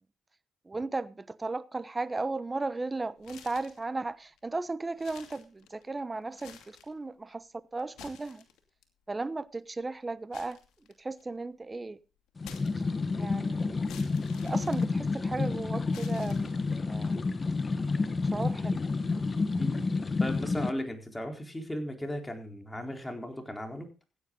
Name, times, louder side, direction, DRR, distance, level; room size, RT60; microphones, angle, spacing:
voice 1, 0.7-8.4 9.1-10.6 11.0-12.0 13.2-13.8 14.4-16.6 16.9-17.2 18.3-18.8, right 3 dB, 20° right, 1.0 m, -35 dB
sound 1, 3.2-3.9 4.4-4.5 4.9-5.9 6.3-7.0 7.8-8.8 10.3-11.4 12.4-13.2 13.9-15.4 15.9-16.8, left 8 dB, 85° left, 2.5 m, -51 dB
sound 2, 12.4-20.7, left 3 dB, 30° left, 1.3 m, -30 dB
voice 2, 20.2-23.9, left 1 dB, 10° left, 3.9 m, -36 dB
16.0 x 9.8 x 3.9 m
cardioid pair, 90°, 0 cm